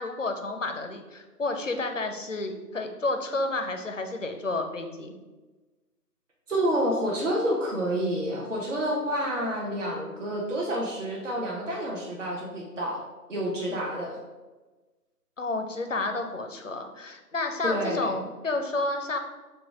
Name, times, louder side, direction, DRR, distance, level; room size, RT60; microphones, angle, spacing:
voice 1, 0.0-5.1 15.4-19.2, left 2 dB, 55° left, 5 dB, 0.6 m, -30 dB
voice 2, 6.5-13.0 13.3-14.2 17.6-18.1, right 1 dB, 50° right, -2 dB, 0.9 m, -28 dB
4.8 x 2.4 x 4.6 m, 1.2 s
figure-of-eight pair, 175°, 48 cm